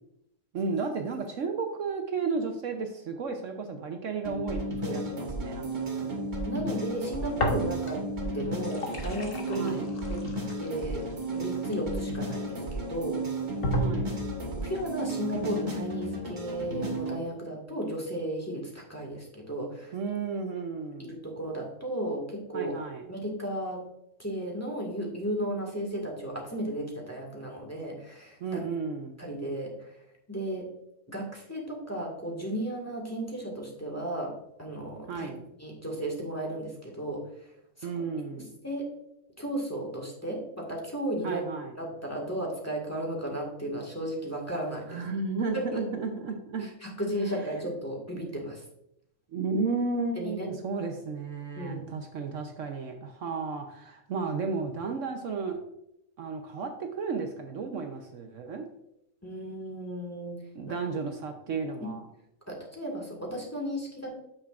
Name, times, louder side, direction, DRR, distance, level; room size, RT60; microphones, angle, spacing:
voice 1, 0.5-6.1 9.6-9.9 13.8-14.1 19.9-21.1 22.5-23.0 28.4-29.2 35.1-35.4 37.8-38.5 41.2-41.7 44.9-46.7 49.3-55.6 56.2-58.7 60.5-62.1, right 4 dB, 65° right, 4 dB, 1.0 m, -33 dB
sound 1, 4.2-17.2, right 1 dB, 35° right, 1.4 m, -34 dB
voice 2, 6.5-9.8 10.1-10.2 10.6-11.0 11.3-13.2 14.5-20.0 21.0-22.7 23.1-23.8 24.2-28.6 29.2-30.0 30.3-30.7 31.1-34.3 34.6-35.3 35.6-37.5 37.8-37.9 38.4-38.8 39.4-41.4 41.8-45.0 45.5-45.8 46.6-48.6 50.1-50.5 51.5-51.8 59.2-60.4 62.5-64.1, right 1 dB, 10° left, -1 dB, 1.7 m, -34 dB
sound 2, 7.4-8.1 8.5-12.4 13.0-13.1 13.6-14.5, equal, 45° left, 1.2 m, -33 dB
8.9 x 6.7 x 2.5 m, 0.80 s
omnidirectional pair, 1.5 m